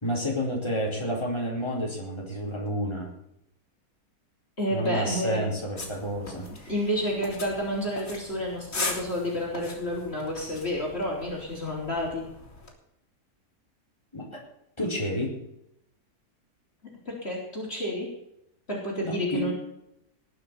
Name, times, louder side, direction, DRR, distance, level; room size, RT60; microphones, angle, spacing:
voice 1, 0.0-3.1 4.7-6.7 14.1-14.4 14.8-15.4 19.0-19.4, equal, 15° left, -3 dB, 4.4 m, -30 dB
voice 2, 4.6-5.4 6.7-12.2 17.1-18.1 18.7-19.5, equal, 40° left, -3 dB, 4.2 m, -30 dB
sound 1, 5.8-12.7, left 3 dB, 55° left, 3.9 m, -39 dB
20.0 x 6.8 x 6.9 m, 0.81 s
omnidirectional pair, 1.6 m